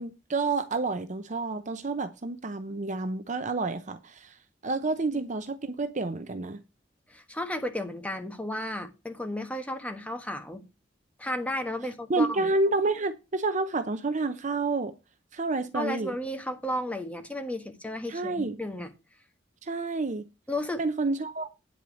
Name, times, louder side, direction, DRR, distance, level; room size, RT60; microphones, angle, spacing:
voice 1, 0.0-4.3 4.6-6.6 12.1-14.9 15.3-16.1 18.1-18.6 19.6-20.2 20.8-21.5, right 3 dB, 40° right, 0.7 m, -29 dB
voice 2, 7.1-10.6 11.2-12.5 15.7-18.9 20.5-20.8, left 1 dB, 5° left, 1.3 m, -33 dB
9.4 x 4.6 x 6.9 m
head